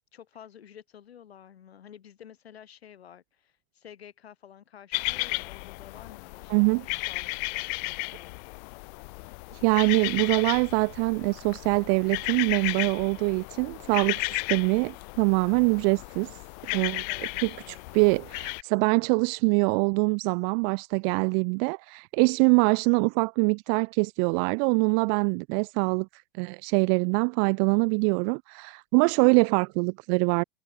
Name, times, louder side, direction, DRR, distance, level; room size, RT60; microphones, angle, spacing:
voice 1, 0.1-6.7 7.1-8.4 16.7-17.8, left 9 dB, 85° left, 4.3 m, -50 dB
sound 1, 4.9-18.6, left 29 dB, 45° left, 0.5 m, -34 dB
voice 2, 6.5-6.8 9.6-16.3 16.7-17.0 17.4-30.4, right 40 dB or more, 45° right, 0.9 m, -24 dB
hypercardioid pair, 115°, 31 cm